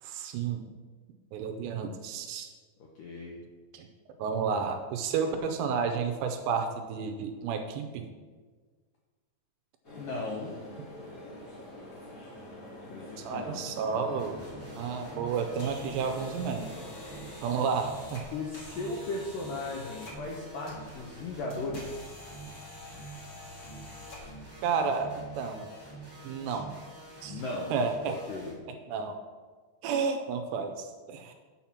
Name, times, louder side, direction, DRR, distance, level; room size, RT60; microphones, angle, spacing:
voice 1, 0.0-0.7 1.3-2.5 3.7-3.9 4.2-8.1 13.2-14.4 14.8-16.7 17.4-18.3 24.6-25.7 26.2-26.7 27.2-27.4 27.7-28.2 28.7-29.2 29.8-31.3, right 5 dB, 85° right, 6 dB, 2.6 m, -31 dB
voice 2, 3.0-3.4 10.0-10.6 12.9-13.7 18.3-22.2 26.5-26.6 27.3-27.7 28.0-28.6, left 3 dB, 80° left, -2 dB, 1.9 m, -37 dB
sound 1, 9.8-17.3, left 1 dB, 35° left, 1.4 m, -45 dB
sound 2, 14.2-28.5, right 3 dB, 50° right, 0.5 m, -47 dB
sound 3, 15.3-24.5, left 2 dB, 60° left, 1.3 m, -48 dB
8.9 x 5.7 x 5.9 m, 1.4 s
omnidirectional pair, 5.2 m